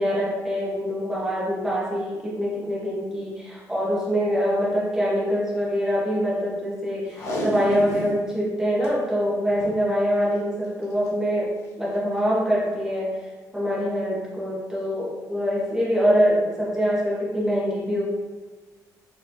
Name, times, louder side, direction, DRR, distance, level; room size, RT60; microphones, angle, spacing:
voice 1, 0.0-13.2 13.5-18.0, equal, 5° right, -6 dB, 0.9 m, -24 dB
Packing tape duct tape, 7.1-8.2 8.6-8.7 8.8-8.9 9.5-9.8 10.8-11.1 11.6-11.7, equal, 45° left, 0.8 m, -31 dB
4.5 x 3.0 x 2.5 m, 1.4 s
cardioid pair, 175°, 7 cm